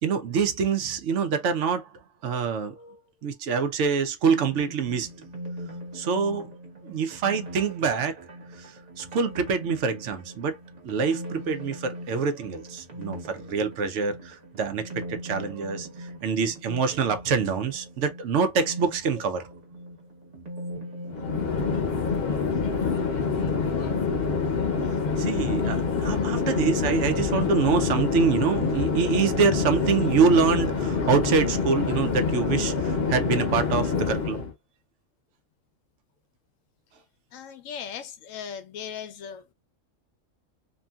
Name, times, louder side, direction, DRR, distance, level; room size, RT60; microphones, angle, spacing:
voice 1, 0.0-1.9 2.2-5.1 5.9-6.5 6.8-8.2 8.6-10.6 10.8-19.5 22.2-22.7 23.1-23.2 25.2-34.4, right 5 dB, 70° right, 0.9 m, -26 dB
sound 1, 4.3-22.4, equal, 35° right, 0.8 m, -41 dB
Chatter / Fixed-wing aircraft airplane, 21.1-34.5, left 5 dB, 55° left, 0.9 m, -26 dB
voice 2, 37.3-39.5, left 8 dB, 85° left, 1.0 m, -38 dB
2.7 x 2.6 x 2.2 m
omnidirectional pair, 1.3 m